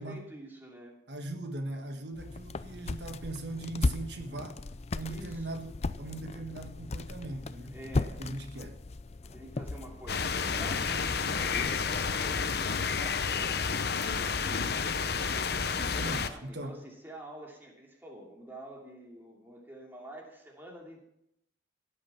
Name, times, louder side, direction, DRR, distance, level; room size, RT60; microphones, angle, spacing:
voice 1, 0.0-1.0 5.0-5.6 7.7-8.2 8.5-8.7 9.2-13.7 14.1-14.6 15.9-21.0, right 1 dB, 10° right, -1 dB, 2.9 m, -48 dB
voice 2, 1.1-4.6 4.9-7.8 8.2-8.7 15.7-16.8, right 2 dB, 65° right, 5 dB, 1.4 m, -39 dB
sound 1, 2.1-12.7, left 2 dB, 35° left, 0.5 m, -37 dB
sound 2, 10.1-16.3, left 5 dB, 55° left, 0.8 m, -30 dB
16.5 x 9.0 x 5.9 m, 0.77 s
head